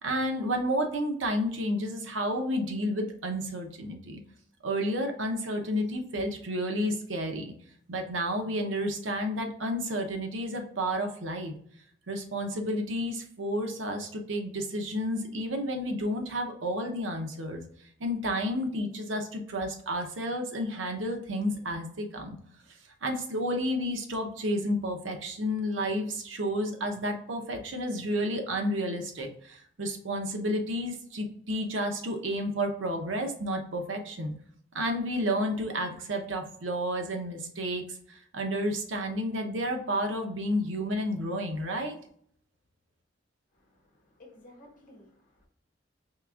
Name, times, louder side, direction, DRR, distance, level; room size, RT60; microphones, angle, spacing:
voice 1, 0.0-4.2 4.6-7.5 7.9-11.5 12.1-17.6 18.0-22.4 23.0-34.3 34.7-42.0, equal, 90° right, 4 dB, 0.7 m, -31 dB
voice 2, 43.5-45.5, left 1 dB, 45° left, -1 dB, 1.3 m, -55 dB
4.6 x 3.4 x 2.4 m, 0.62 s
head